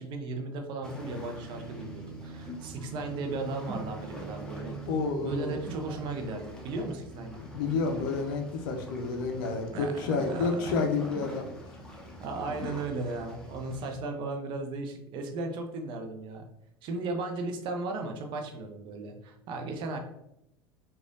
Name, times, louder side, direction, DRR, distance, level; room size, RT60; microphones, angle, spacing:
voice 1, 0.0-4.8 5.2-7.4 9.7-10.7 12.2-16.4 16.8-20.0, right 3 dB, 40° right, 4 dB, 0.6 m, -36 dB
sound 1, 0.8-14.0, right 1 dB, 5° left, 0.8 m, -43 dB
voice 2, 4.9-5.5 7.4-11.5, left 4 dB, 55° left, 3 dB, 0.5 m, -30 dB
4.8 x 2.4 x 2.5 m, 0.81 s
figure-of-eight pair, 75°, 13 cm